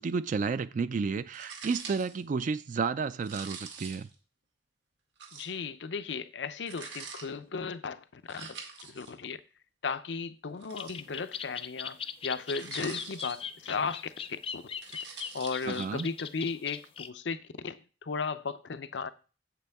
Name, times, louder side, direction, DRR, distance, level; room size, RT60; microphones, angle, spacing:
voice 1, 0.0-4.1 15.6-16.1, right 5 dB, 45° right, 0.3 m, -31 dB
sound 1, 1.3-2.2 3.2-4.1 5.2-5.6 6.7-7.2 8.3-9.1 10.5-11.4 12.4-13.6 14.6-15.8, right 5 dB, 75° right, 1.9 m, -45 dB
voice 2, 5.3-8.6 8.9-9.4 9.8-14.1 14.5-14.6 14.9-19.1, left 5 dB, 80° left, 0.6 m, -36 dB
sound 2, 10.8-17.1, left 7 dB, 30° left, 0.4 m, -39 dB
8.0 x 7.6 x 3.5 m
head